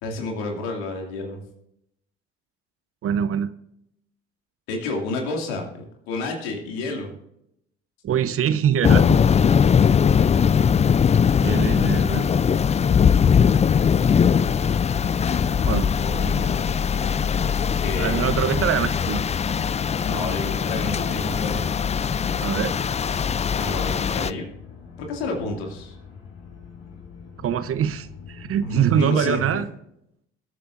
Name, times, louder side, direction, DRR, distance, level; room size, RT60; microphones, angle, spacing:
voice 1, 0.0-1.4 4.7-7.1 16.0-16.7 17.6-18.3 20.1-21.8 23.6-24.5 25.0-25.9 28.6-29.6, left 2 dB, 80° left, 1 dB, 2.4 m, -30 dB
voice 2, 3.0-3.5 8.0-9.2 11.4-12.4 15.6-15.9 18.0-19.2 22.4-22.8 27.4-29.7, right 9 dB, 50° right, 14 dB, 0.8 m, -24 dB
sound 1, 8.8-24.3, left 7 dB, 20° left, 0.4 m, -20 dB
sound 2, 12.9-28.7, left 5 dB, 60° left, 3.6 m, -44 dB
21.5 x 8.5 x 2.6 m, 0.79 s
hypercardioid pair, 60°, 30 cm